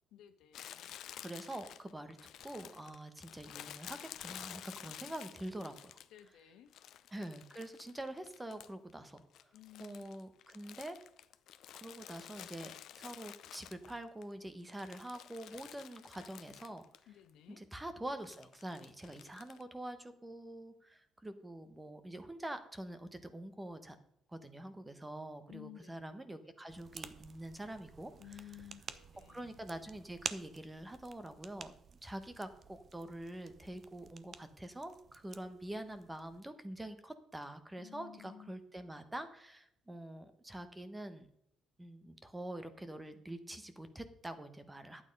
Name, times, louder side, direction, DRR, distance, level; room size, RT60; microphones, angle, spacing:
voice 1, 0.1-1.0 6.1-6.7 9.5-10.0 17.1-17.6 25.5-25.9 26.3-26.4 28.2-29.6 37.8-38.5, left 12 dB, 90° left, 8 dB, 1.4 m, -55 dB
Crumpling crinkling, 0.5-6.3 6.7-8.9 9.2-14.2 14.6-17.0 17.3-17.4 18.2-19.6, left 11 dB, 65° left, 0.6 m, -51 dB
voice 2, 1.2-2.2 2.4-6.0 7.1-9.5 9.8-11.0 11.7-16.9 17.5-24.0 24.3-28.4 29.3-31.7 32.0-41.3 41.8-45.0, right 1 dB, 10° right, 10 dB, 1.0 m, -45 dB
sound 1, 26.7-36.4, right 6 dB, 35° right, 0.7 m, -50 dB
11.5 x 8.8 x 5.3 m, 0.73 s
cardioid pair, 150°, 0 cm